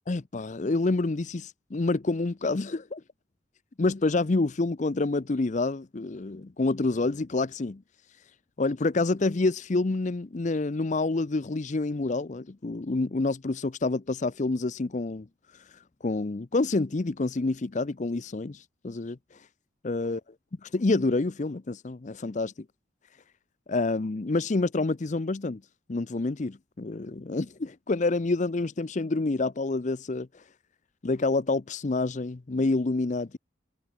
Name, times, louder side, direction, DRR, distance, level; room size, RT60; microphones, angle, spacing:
voice 1, 0.1-3.0 3.8-7.8 8.6-15.3 16.0-19.2 19.8-20.2 20.7-22.5 23.7-25.6 25.9-30.4 31.0-33.4, left 3 dB, 35° left, 0.5 m, -28 dB
head